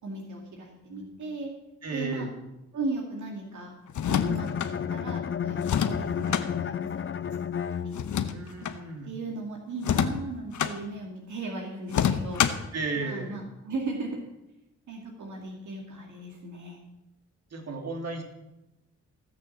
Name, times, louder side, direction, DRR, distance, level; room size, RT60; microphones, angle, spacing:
voice 1, 0.0-1.5 1.9-2.3 2.7-3.7 4.1-7.1 7.7-8.3 9.0-12.4 13.0-14.2 14.9-16.8, right 3 dB, 80° right, 0 dB, 2.2 m, -37 dB
voice 2, 1.8-2.3 8.3-9.1 12.7-13.3 17.5-18.2, right 3 dB, 60° right, 2 dB, 2.6 m, -34 dB
sound 1, 3.9-4.7 5.6-6.5 7.9-8.8 9.8-10.8 11.9-12.7, left 8 dB, 85° left, 0.9 m, -27 dB
Bowed string instrument, 4.0-8.4, left 8 dB, 45° left, 0.6 m, -32 dB
17.0 x 6.5 x 7.1 m, 0.91 s
cardioid pair, 80°, 29 cm